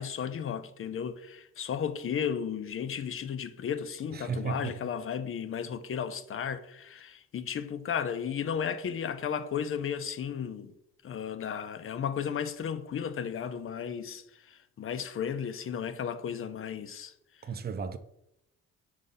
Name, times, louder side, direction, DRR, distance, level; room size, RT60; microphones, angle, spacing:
voice 1, 0.0-10.7 11.0-17.1, left 7 dB, 45° left, 0.6 m, -34 dB
voice 2, 4.1-4.7 17.4-18.0, right 5 dB, 30° right, 0.6 m, -34 dB
4.9 x 3.8 x 5.5 m
cardioid pair, 90°, 30 cm